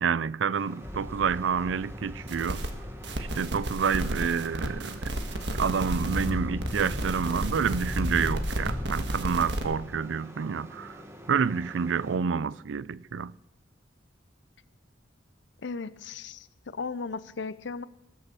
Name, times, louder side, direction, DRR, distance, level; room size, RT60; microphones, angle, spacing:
voice 1, 0.0-2.6 3.2-5.1 5.5-11.0 11.3-13.3, right 6 dB, 90° right, 0.4 m, -28 dB
sound 1, 0.5-12.2, equal, 15° right, 1.5 m, -47 dB
sound 2, 0.8-9.2, left 1 dB, 10° left, 0.4 m, -37 dB
sound 3, 2.3-2.7 3.0-6.3 6.6-9.6, right 1 dB, 70° right, 1.6 m, -33 dB
voice 2, 15.6-17.8, left 4 dB, 75° left, 0.6 m, -36 dB
20.0 x 7.0 x 6.9 m
head